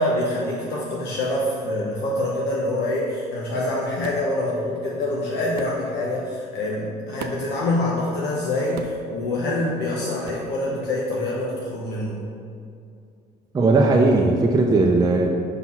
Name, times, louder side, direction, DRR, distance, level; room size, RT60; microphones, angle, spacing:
voice 1, 0.0-12.2, left 1 dB, 75° left, -4 dB, 1.0 m, -25 dB
sound 1, 4.0-4.3 5.6-5.8 7.2-7.6 8.8-9.1 10.2-10.5, right 7 dB, 70° right, 0.5 m, -37 dB
voice 2, 13.5-15.3, right 3 dB, 25° right, 0 dB, 0.5 m, -17 dB
5.6 x 4.2 x 5.7 m, 2.4 s
cardioid pair, 105°, 17 cm